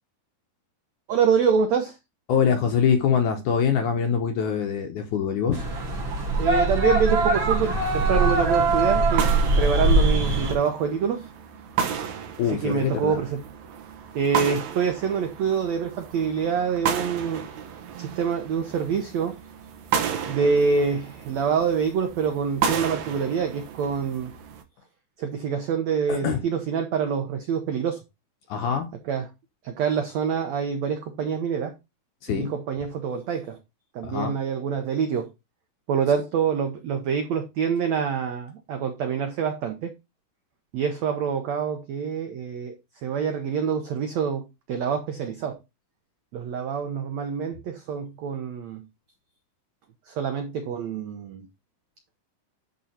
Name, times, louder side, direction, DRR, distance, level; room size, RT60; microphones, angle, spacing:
voice 1, 1.1-2.0 6.4-9.3 9.6-11.3 12.5-13.4 14.1-17.4 18.0-19.4 20.3-24.3 25.2-28.0 29.0-29.3 29.6-31.7 32.3-33.6 33.9-35.3 35.9-39.9 40.7-42.7 43.0-45.6 46.3-48.8 50.0-51.5, right 6 dB, 90° right, 1.5 m, -26 dB
voice 2, 2.3-5.6 12.4-13.2 26.1-26.4 28.5-28.9 32.2-32.5 34.0-34.3, left 7 dB, 75° left, 1.9 m, -24 dB
sound 1, 5.5-10.5, right 2 dB, 45° right, 1.7 m, -22 dB
sound 2, 7.6-24.6, right 7 dB, 65° right, 1.9 m, -33 dB
11.0 x 3.8 x 4.2 m
omnidirectional pair, 4.5 m